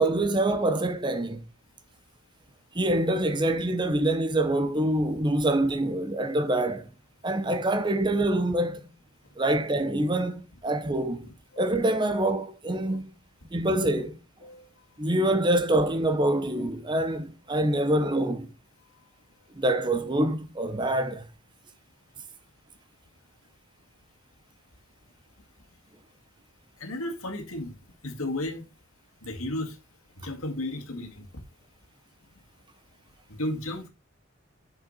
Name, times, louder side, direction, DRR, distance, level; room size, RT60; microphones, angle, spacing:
voice 1, 0.0-1.4 2.7-6.9 7.2-8.9 9.4-11.3 11.6-13.1 13.5-14.2 15.0-18.5 19.6-21.2, right 1 dB, 20° right, 0.8 m, -25 dB
voice 2, 26.8-27.7 28.0-28.6 29.2-29.8 30.2-31.2 33.3-33.9, left 1 dB, 90° left, 2.1 m, -33 dB
7.4 x 6.9 x 4.1 m
head